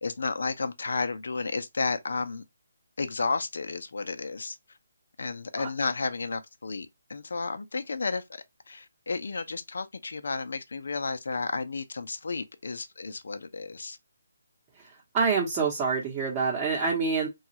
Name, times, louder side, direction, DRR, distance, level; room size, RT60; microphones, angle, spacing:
voice 1, 0.0-2.4 3.0-4.6 5.2-14.0, left 4 dB, 70° left, 0.6 m, -32 dB
voice 2, 14.8-17.3, right 5 dB, 20° right, 0.9 m, -27 dB
2.9 x 2.4 x 2.8 m
hypercardioid pair, 155°, 0 cm